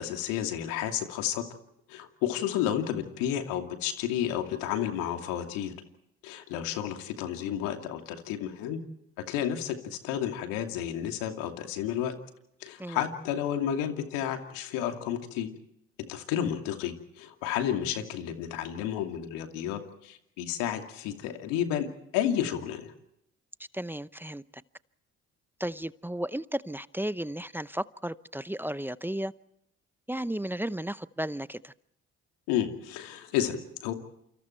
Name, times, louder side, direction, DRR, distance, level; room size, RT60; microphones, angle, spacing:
voice 1, 0.0-1.4 1.9-5.7 6.2-8.8 9.3-12.1 12.6-15.5 16.0-21.9 22.1-22.9 32.5-33.9, left 10 dB, 80° left, 2.6 m, -31 dB
voice 2, 23.7-24.4 25.6-29.3 30.1-31.7, right 1 dB, 5° right, 0.8 m, -34 dB
28.5 x 26.0 x 4.6 m
hypercardioid pair, 60°, 33 cm